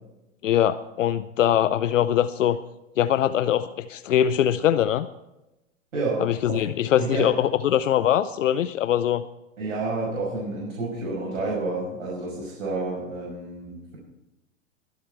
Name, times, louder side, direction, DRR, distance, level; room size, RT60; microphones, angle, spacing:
voice 1, 0.4-2.6 3.0-5.1 6.2-9.2, left 10 dB, 70° left, 12 dB, 0.6 m, -22 dB
voice 2, 5.9-6.6 7.0-7.3 9.6-14.0, right 3 dB, 70° right, -4 dB, 5.7 m, -30 dB
21.5 x 8.3 x 4.6 m, 0.95 s
hypercardioid pair, 110°, 39 cm